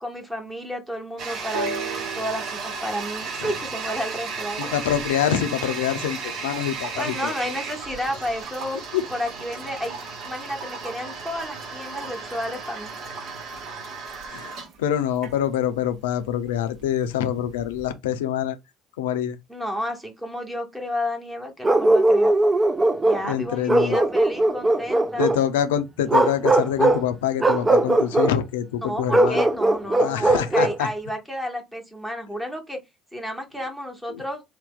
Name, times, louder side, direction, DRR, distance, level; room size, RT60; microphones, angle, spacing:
voice 1, 0.0-4.7 7.0-8.8 9.1-12.9 19.5-22.4 23.0-25.3 28.8-32.8 33.1-34.4, equal, 5° right, 1.1 m, -31 dB
Toilet flush, 1.2-17.9, right 5 dB, 55° right, 0.8 m, -34 dB
sound 1, 1.5-5.4 6.3-6.4, right 3 dB, 85° right, 0.6 m, -36 dB
voice 2, 4.6-7.3 8.9-9.0 14.3-18.6 19.0-19.4 23.2-24.0 25.2-29.5 30.0-30.9 34.1-34.2, left 10 dB, 75° left, 0.4 m, -25 dB
Bark, 21.6-23.3 23.7-25.4 26.1-27.0 27.4-28.3 29.1-30.8, right 2 dB, 20° right, 0.4 m, -19 dB
2.7 x 2.1 x 3.6 m
figure-of-eight pair, 55°, 0 cm